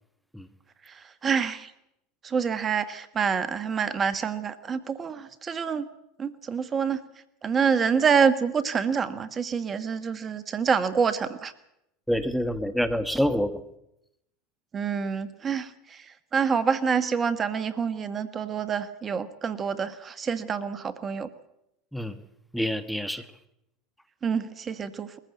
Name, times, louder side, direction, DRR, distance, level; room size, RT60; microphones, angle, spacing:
voice 1, 1.2-1.7 2.2-5.8 6.2-7.0 7.4-11.5 14.7-15.7 16.3-21.3 24.2-25.1, right 6 dB, 30° right, 13 dB, 1.4 m, -26 dB
voice 2, 12.1-13.6 21.9-22.2 22.5-23.2, equal, ahead, 10 dB, 1.4 m, -27 dB
21.5 x 14.5 x 8.3 m, 0.83 s
hypercardioid pair, 90°, 0 cm